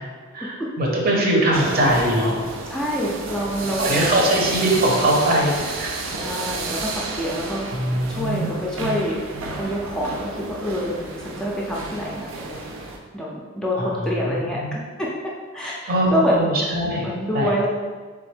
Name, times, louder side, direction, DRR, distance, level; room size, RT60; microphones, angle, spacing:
voice 1, 0.3-2.4 3.8-5.9 7.7-8.5 13.7-14.7 15.9-17.1 17.3-17.7, right 1 dB, 50° right, -2 dB, 0.9 m, -21 dB
sound 1, 1.5-13.0, right 3 dB, 90° right, 0.5 m, -31 dB
voice 2, 2.7-4.5 6.2-7.7 8.1-9.2 9.5-15.1 15.5-16.5 17.0-17.7, equal, 5° left, -5 dB, 0.4 m, -27 dB
3.6 x 3.5 x 3.4 m, 1.5 s
head